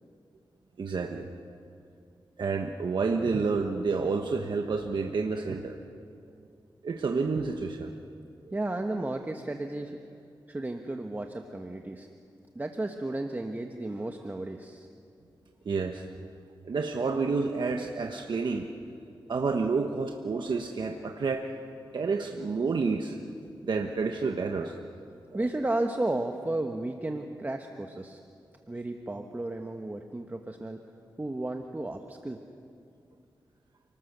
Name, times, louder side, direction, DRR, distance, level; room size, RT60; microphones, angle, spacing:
voice 1, 0.8-1.3 2.4-5.8 6.8-8.0 8.4-8.5 15.6-16.1 16.6-18.7 19.3-21.5 21.9-23.2 23.6-24.8 25.3-25.5, right 4 dB, 70° right, 3 dB, 1.3 m, -29 dB
voice 2, 8.5-10.0 10.5-12.1 12.5-14.9 25.3-28.2 28.7-30.8 31.2-32.4, right 2 dB, 20° right, 4 dB, 1.2 m, -33 dB
29.5 x 19.5 x 6.8 m, 2.5 s
wide cardioid pair, 80°, 8 cm